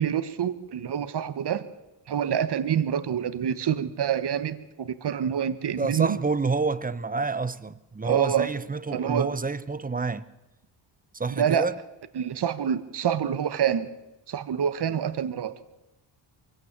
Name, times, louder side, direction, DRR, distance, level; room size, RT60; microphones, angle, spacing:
voice 1, 0.0-1.7 2.1-6.2 8.0-8.5 8.9-9.3 11.3-11.7 12.1-13.9 14.3-15.6, right 8 dB, 55° right, 1.4 m, -27 dB
voice 2, 5.8-10.2 11.1-11.7, right 4 dB, 20° right, 0.9 m, -28 dB
23.0 x 16.0 x 7.4 m
cardioid pair, 80°, 48 cm